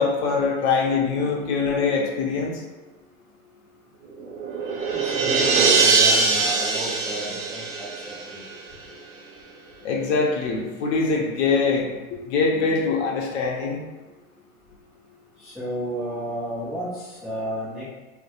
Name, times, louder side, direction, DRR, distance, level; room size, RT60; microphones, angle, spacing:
voice 1, 0.0-2.6 9.8-11.9 12.3-13.8, left 4 dB, 55° left, -1 dB, 0.6 m, -23 dB
sound 1, 4.1-8.7, right 4 dB, 75° right, 0.6 m, -22 dB
voice 2, 4.9-8.4 15.4-17.9, equal, ahead, -11 dB, 0.4 m, -32 dB
2.2 x 2.0 x 2.8 m, 1.2 s
hypercardioid pair, 115°, 42 cm